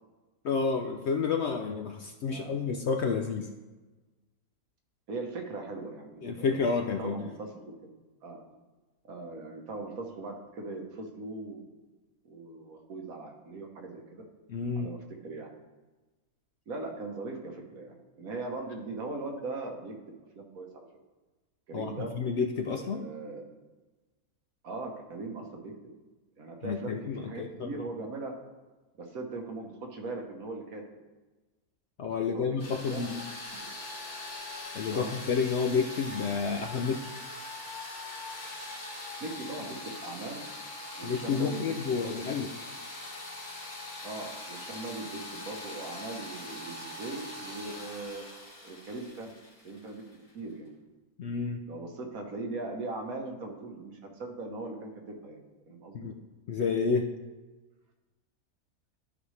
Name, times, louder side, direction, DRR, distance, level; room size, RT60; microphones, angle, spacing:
voice 1, 0.4-3.5 6.2-7.3 14.5-14.9 21.7-23.1 26.6-27.8 32.0-33.2 34.7-37.1 41.0-42.5 51.2-51.6 55.9-56.2 56.5-57.1, left 5 dB, 65° left, 4 dB, 0.7 m, -30 dB
voice 2, 2.3-2.6 5.1-6.6 7.0-7.5 8.2-8.4 9.0-11.8 12.2-14.2 14.8-15.0 15.2-15.5 16.7-20.0 20.3-20.8 21.7-22.1 22.7-23.4 24.6-25.7 26.4-28.3 29.0-30.8 32.2-33.2 33.5-33.7 34.9-35.1 39.2-40.4 41.0-41.8 42.0-42.2 44.0-48.3 48.6-49.3 49.6-50.0 50.3-50.7 51.7-56.1, right 3 dB, 70° right, 2 dB, 1.6 m, -40 dB
sound 1, 32.6-50.3, left 2 dB, 85° left, 2.5 m, -42 dB
12.5 x 5.2 x 3.3 m, 1.2 s
omnidirectional pair, 1.5 m